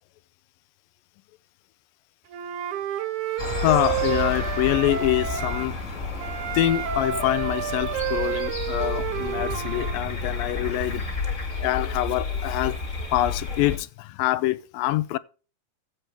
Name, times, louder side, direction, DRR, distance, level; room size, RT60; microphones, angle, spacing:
Wind instrument woodwind instrument, 2.3-5.7 6.2-10.0, right 10 dB, 70° right, 2.3 m, -30 dB
voice 1, 3.3-5.8 6.5-11.1 11.6-12.8 13.1-15.2, left 15 dB, 80° left, 2.4 m, -25 dB
sound 1, 3.4-13.8, left 3 dB, 30° left, 1.8 m, -31 dB
15.5 x 9.1 x 3.2 m
omnidirectional pair, 4.1 m